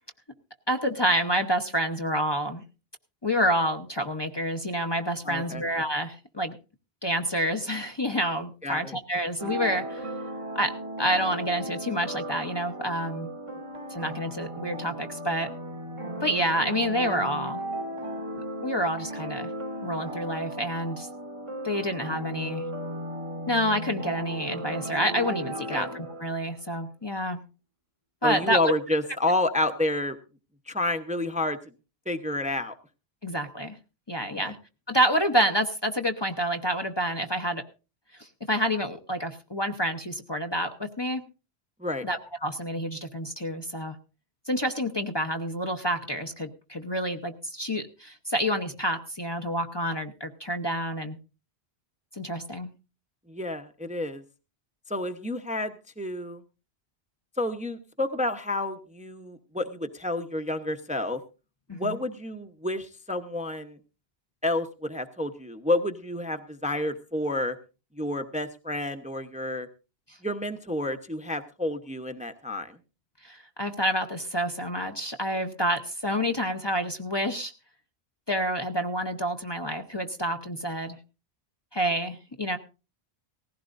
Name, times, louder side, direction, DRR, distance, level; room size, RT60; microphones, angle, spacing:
voice 1, 0.7-2.6 3.2-6.6 7.0-10.1 10.5-10.7 11.0-13.3 13.9-15.5 16.2-17.6 18.6-19.5 19.8-21.1 21.6-22.6 23.5-27.4 28.2-28.7 33.2-33.8 34.1-34.6 34.9-37.6 38.2-41.2 42.0-44.0 44.5-51.2 52.1-52.7 61.7-62.0 73.2-77.5 78.3-81.0 81.7-82.6, equal, 25° left, 5 dB, 0.9 m, -28 dB
voice 2, 5.2-5.6 8.6-9.0 25.7-25.9 28.2-30.2 30.7-31.6 32.1-32.7 34.4-34.5 41.8-42.0 53.3-54.2 54.9-56.4 57.4-61.2 61.7-63.8 64.4-67.5 68.0-69.7 70.2-72.8, left 1 dB, 10° right, 7 dB, 0.8 m, -30 dB
sound 1, 9.4-26.6, right 1 dB, 30° right, 1.0 m, -36 dB
18.5 x 15.5 x 2.6 m, 0.31 s
omnidirectional pair, 1.1 m